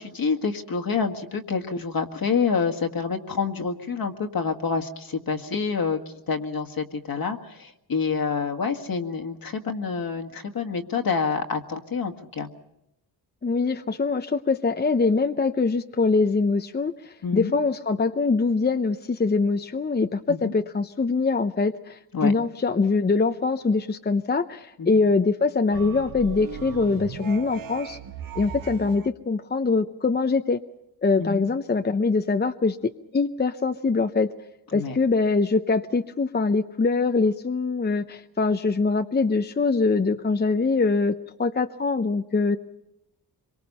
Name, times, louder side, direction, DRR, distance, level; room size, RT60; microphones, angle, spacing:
voice 1, 0.0-6.0 6.3-12.5 17.2-17.6 20.3-20.5 22.1-22.3 24.8-24.9 31.2-31.5 34.7-35.0, left 5 dB, 60° left, 5 dB, 1.9 m, -27 dB
voice 2, 13.4-28.0 28.4-30.6 31.0-34.3 34.7-42.6, left 4 dB, 25° left, 7 dB, 0.7 m, -23 dB
sound 1, 25.7-29.1, right 8 dB, 55° right, 1.0 m, -37 dB
25.0 x 23.5 x 5.6 m, 0.86 s
cardioid pair, 85°, 40 cm